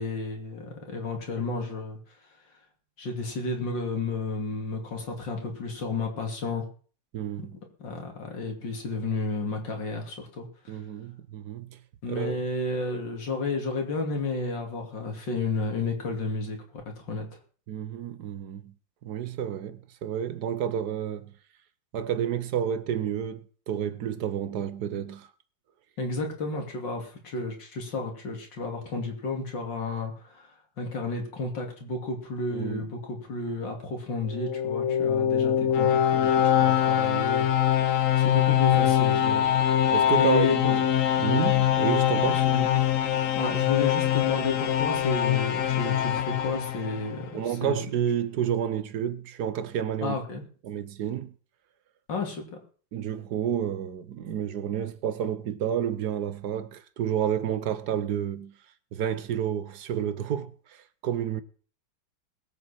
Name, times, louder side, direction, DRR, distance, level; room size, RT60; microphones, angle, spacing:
voice 1, 0.0-2.0 3.0-6.6 7.4-7.5 7.8-10.8 12.0-17.4 26.0-39.7 40.1-40.7 42.3-42.7 43.4-47.8 50.0-50.4 52.1-52.6, left 3 dB, 75° left, 3.4 m, -32 dB
voice 2, 7.1-7.5 10.7-11.7 12.1-12.4 17.7-18.7 19.0-21.3 21.9-25.3 32.5-32.9 35.6-35.7 39.9-40.8 41.2-42.4 47.3-50.2 50.6-51.3 52.9-58.5 58.9-61.4, right 9 dB, 65° right, 1.4 m, -30 dB
sound 1, 34.2-47.3, left 10 dB, 55° left, 1.1 m, -23 dB
21.0 x 7.8 x 4.3 m
omnidirectional pair, 2.0 m